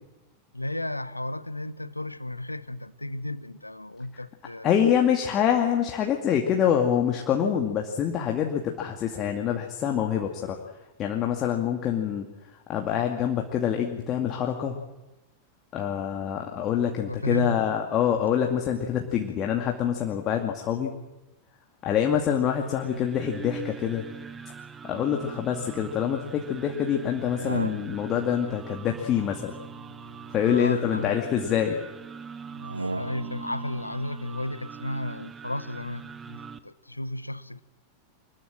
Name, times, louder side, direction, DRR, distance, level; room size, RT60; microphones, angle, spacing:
voice 1, 0.5-4.8 17.0-17.6 30.4-31.2 32.9-37.6, left 1 dB, 85° left, 0.9 m, -33 dB
voice 2, 4.6-10.6 11.0-12.3 12.7-14.7 15.7-20.9 21.8-24.0 24.9-29.5 30.3-31.8, left 9 dB, 30° left, 2.3 m, -25 dB
sound 1, 22.4-36.6, right 6 dB, 20° right, 1.2 m, -42 dB
sound 2, 27.2-28.3 29.5-31.2 32.5-33.5, right 2 dB, 80° right, 0.7 m, -36 dB
25.0 x 21.0 x 7.6 m
figure-of-eight pair, 90°, 0 cm